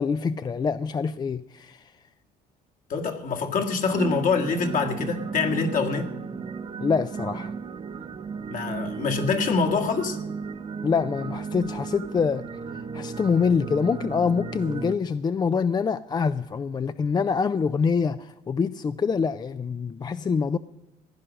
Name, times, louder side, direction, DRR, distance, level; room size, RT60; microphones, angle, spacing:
voice 1, 0.0-1.9 6.8-7.5 10.8-12.5 12.7-20.6, left 5 dB, 25° left, 0.4 m, -25 dB
voice 2, 2.9-6.1 8.5-10.2, left 5 dB, 55° left, 1.9 m, -25 dB
sound 1, 3.9-14.9, right 5 dB, 35° right, 0.8 m, -34 dB
15.5 x 10.0 x 6.3 m
cardioid pair, 110°, 17 cm